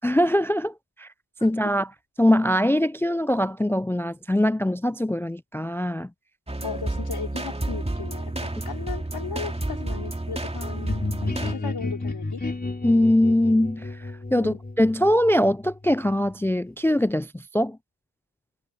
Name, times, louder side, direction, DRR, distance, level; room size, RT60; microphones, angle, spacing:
voice 1, 0.0-1.1 1.4-1.9 2.2-6.1 12.8-13.9 14.3-17.8, left 1 dB, 5° left, 0.4 m, -22 dB
sound 1, 6.5-11.5, right 1 dB, 15° right, 2.7 m, -30 dB
voice 2, 6.6-12.4 14.4-14.6, left 6 dB, 55° left, 4.1 m, -36 dB
sound 2, 10.9-16.5, left 2 dB, 20° left, 3.3 m, -32 dB
supercardioid pair, 50°, 43 cm